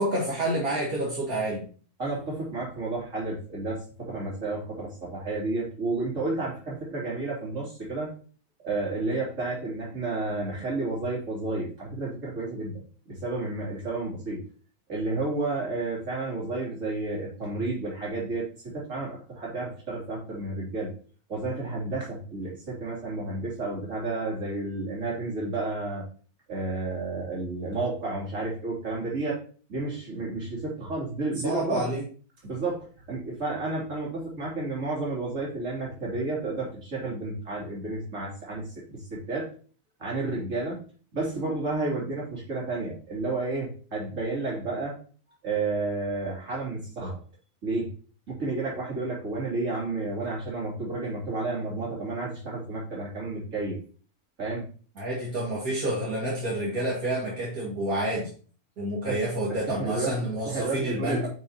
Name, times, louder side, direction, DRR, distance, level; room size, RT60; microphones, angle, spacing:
voice 1, 0.0-1.6 31.4-32.0 55.0-58.3 58.8-61.3, right 1 dB, 75° right, -6 dB, 2.5 m, -28 dB
voice 2, 2.0-8.1 8.6-14.4 14.9-20.9 21.3-26.1 26.5-29.4 29.7-31.8 32.4-39.5 40.0-40.8 41.1-45.0 45.4-47.2 47.6-47.9 48.3-53.8 54.4-54.7 59.0-60.1 60.5-61.3, right 3 dB, 60° right, -5 dB, 3.5 m, -31 dB
9.5 x 5.5 x 2.9 m, 0.41 s
omnidirectional pair, 1.5 m